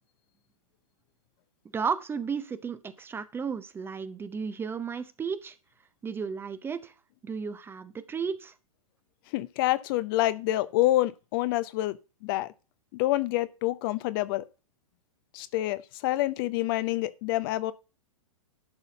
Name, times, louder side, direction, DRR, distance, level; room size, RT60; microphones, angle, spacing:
voice 1, 1.7-5.5 6.0-6.9 7.2-8.5, right 6 dB, 10° right, 0.6 m, -33 dB
voice 2, 9.3-12.5 12.9-14.4 15.3-17.7, left 16 dB, 40° left, 0.6 m, -27 dB
11.5 x 4.1 x 6.8 m
figure-of-eight pair, 105°, 18 cm